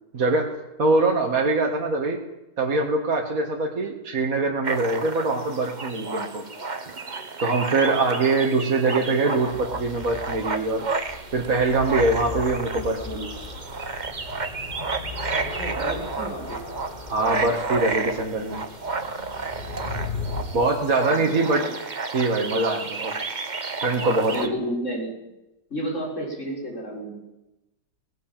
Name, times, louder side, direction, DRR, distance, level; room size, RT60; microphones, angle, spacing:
voice 1, 0.1-0.5 0.8-2.2 2.6-6.4 7.4-10.9 11.3-13.3 17.1-18.6 20.5-21.6 22.1-23.1 23.8-24.4, right 3 dB, 55° right, 0 dB, 2.3 m, -23 dB
sound 1, 4.6-24.5, right 4 dB, 30° right, 1.2 m, -31 dB
sound 2, 9.4-20.5, left 3 dB, 30° left, 2.6 m, -37 dB
voice 2, 15.4-16.6 21.1-21.7 24.3-25.1 25.7-27.2, equal, 45° left, -1 dB, 6.8 m, -31 dB
18.5 x 17.0 x 9.1 m, 0.95 s
omnidirectional pair, 1.8 m